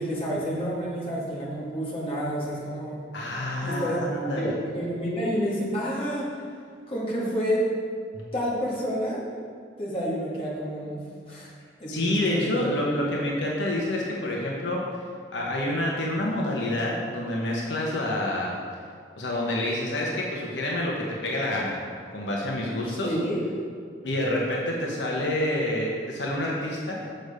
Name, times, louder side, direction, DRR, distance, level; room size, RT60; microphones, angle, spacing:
voice 1, 0.0-3.0 3.6-4.0 4.3-6.4 6.9-7.7 8.3-9.2 9.8-11.5 11.8-12.7 22.9-23.4, equal, 30° left, -6 dB, 1.7 m, -29 dB
voice 2, 3.1-4.5 8.1-8.2 11.9-14.8 15.3-18.5 19.2-21.7 22.1-23.1 24.0-27.0, left 1 dB, 75° left, -2 dB, 1.1 m, -28 dB
6.6 x 6.2 x 4.9 m, 2.1 s
head